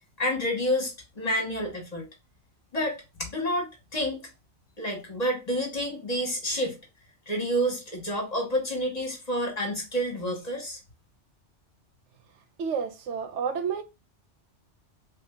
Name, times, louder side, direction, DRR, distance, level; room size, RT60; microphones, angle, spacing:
voice 1, 0.2-2.1 2.7-4.2 4.8-6.8 7.3-10.8, equal, 35° left, 1.3 m, -29 dB
voice 2, 12.6-13.8, right 6 dB, 85° right, 1.0 m, -30 dB
3.2 x 2.7 x 3.5 m
omnidirectional pair, 1.2 m